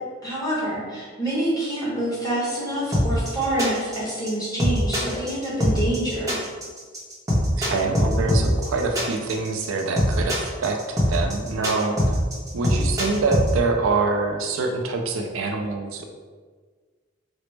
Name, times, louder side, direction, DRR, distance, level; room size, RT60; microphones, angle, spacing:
voice 1, 0.2-6.4, right 1 dB, 20° left, -8 dB, 1.0 m, -26 dB
sound 1, 2.9-13.5, equal, 15° right, 0.7 m, -22 dB
voice 2, 7.6-10.8 11.1-12.1 12.5-16.1, right 3 dB, 80° right, 3 dB, 0.4 m, -25 dB
4.0 x 2.0 x 3.2 m, 1.5 s
head